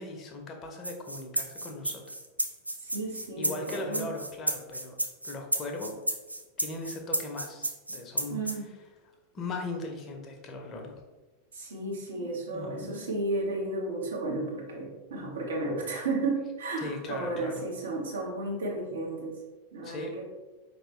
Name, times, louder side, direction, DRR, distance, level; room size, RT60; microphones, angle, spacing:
voice 1, 0.0-2.1 3.4-5.0 5.2-6.0 6.6-8.4 9.3-11.0 12.2-13.0 16.8-17.6 19.8-20.1, left 2 dB, 30° left, 2 dB, 0.8 m, -39 dB
sound 1, 0.8-8.5, right 1 dB, 85° right, 0.4 m, -32 dB
voice 2, 2.8-4.1 8.3-8.7 11.5-19.4 19.7-20.2, right 2 dB, 65° right, -2 dB, 1.2 m, -33 dB
4.9 x 3.0 x 3.1 m, 1.1 s
figure-of-eight pair, 90°, 0 cm